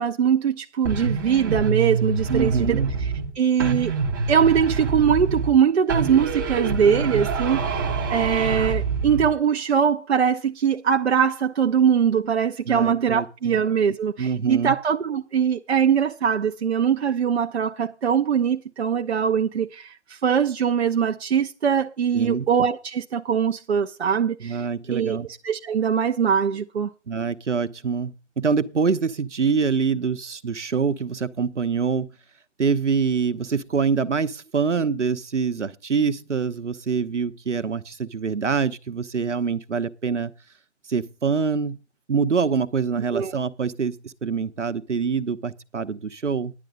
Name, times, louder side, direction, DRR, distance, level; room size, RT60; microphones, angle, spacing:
voice 1, 0.0-2.8 3.4-3.9 4.3-24.6 24.9-25.2 25.4-26.9 43.1-43.3, right 7 dB, 60° right, 0.7 m, -22 dB
sound 1, 0.8-3.3 3.6-5.6 5.9-9.3, right 4 dB, 20° right, 0.7 m, -26 dB
voice 2, 2.3-2.9 12.7-13.6 14.2-14.8 22.1-22.5 24.4-25.3 27.1-32.1 32.6-40.3 40.9-41.8 42.1-46.5, right 5 dB, 80° right, 1.0 m, -25 dB
10.5 x 8.6 x 5.2 m
figure-of-eight pair, 145°, 36 cm